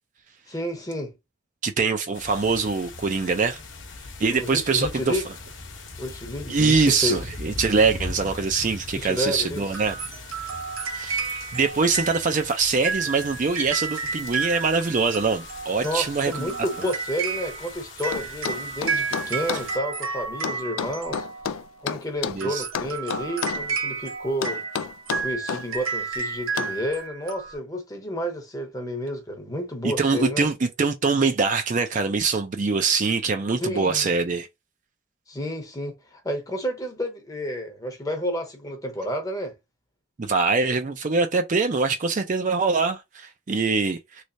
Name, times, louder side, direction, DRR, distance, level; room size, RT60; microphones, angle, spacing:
voice 1, 0.5-1.1 4.3-5.2 6.0-7.2 8.9-9.7 15.8-21.3 21.8-24.6 25.1-30.5 33.6-34.1 35.3-39.5, equal, 15° left, 0.8 m, -30 dB
voice 2, 1.6-3.6 4.2-5.2 6.5-9.9 10.9-16.5 22.3-22.6 29.8-34.5 40.2-44.2, right 4 dB, 40° right, 0.4 m, -23 dB
sound 1, 2.1-19.8, left 3 dB, 60° left, 0.9 m, -41 dB
sound 2, 9.7-21.7 22.3-27.6, right 5 dB, 90° right, 1.1 m, -32 dB
sound 3, 18.1-19.7 20.4-22.4 22.7-23.7 24.4-25.7 26.6-26.8, left 7 dB, 85° left, 0.3 m, -30 dB
3.2 x 3.2 x 2.6 m
head